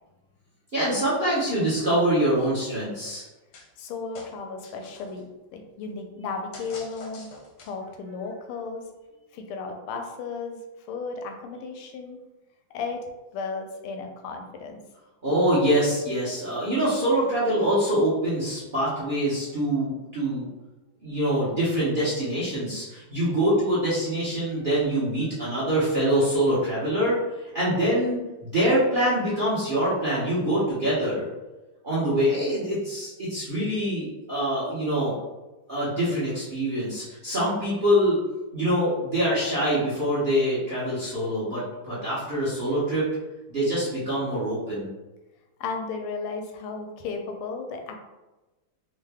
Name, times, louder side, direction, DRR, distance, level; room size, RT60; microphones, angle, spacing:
voice 1, 0.7-3.2 15.2-20.5 21.0-27.2 27.4-31.3 31.8-35.2 35.7-38.2 38.5-43.1 43.5-44.9, right 1 dB, 60° right, -9 dB, 0.5 m, -24 dB
sound 1, 3.5-3.9 4.1-5.2 6.5-7.9, left 3 dB, 70° left, 1.0 m, -45 dB
voice 2, 3.8-7.3 7.6-8.9 9.3-12.2 12.7-13.0 13.3-14.8 45.6-47.9, left 4 dB, 90° left, 4 dB, 1.5 m, -34 dB
3.7 x 2.2 x 3.3 m, 1.1 s
omnidirectional pair, 2.3 m